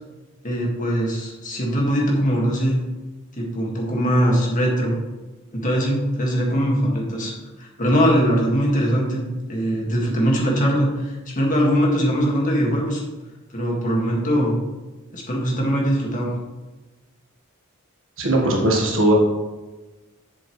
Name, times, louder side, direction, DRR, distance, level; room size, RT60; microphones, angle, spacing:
voice 1, 0.4-2.8 3.4-5.0 5.5-13.0 13.5-14.5 15.1-16.3, equal, 40° left, -2 dB, 1.8 m, -21 dB
voice 2, 18.2-19.1, right 1 dB, 70° right, -1 dB, 1.6 m, -19 dB
7.7 x 7.1 x 3.1 m, 1.2 s
head